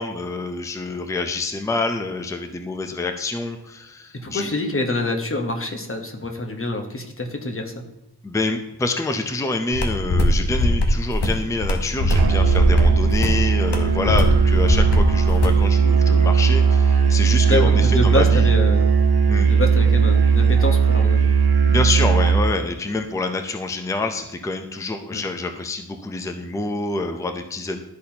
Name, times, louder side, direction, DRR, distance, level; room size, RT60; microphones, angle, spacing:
voice 1, 0.0-4.5 8.2-18.5 19.3-19.5 21.6-27.8, left 3 dB, 10° left, 6 dB, 0.5 m, -27 dB
voice 2, 4.2-7.8 17.5-18.9 19.5-21.3 25.1-25.2, left 2 dB, 30° left, 3 dB, 1.0 m, -26 dB
sound 1, 9.7-15.6, left 1 dB, 80° left, 1.0 m, -21 dB
Musical instrument, 12.1-22.5, right 5 dB, 65° right, 0.7 m, -17 dB
12.0 x 4.2 x 2.8 m, 0.88 s
wide cardioid pair, 70°, 41 cm